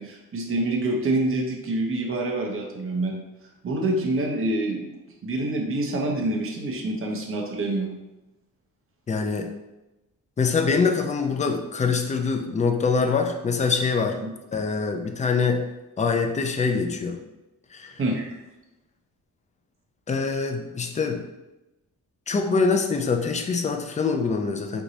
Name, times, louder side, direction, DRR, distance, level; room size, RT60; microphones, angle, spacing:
voice 1, 0.0-3.2 3.6-4.9 5.2-7.9 14.2-14.3 18.0-18.3, right 2 dB, 35° right, 0 dB, 0.7 m, -26 dB
voice 2, 9.1-9.5 10.4-14.2 14.5-15.6 16.0-17.2 17.7-18.0 20.1-21.2 22.3-24.8, left 4 dB, 20° left, 5 dB, 0.3 m, -24 dB
4.6 x 2.6 x 3.9 m, 0.99 s
wide cardioid pair, 160°, 37 cm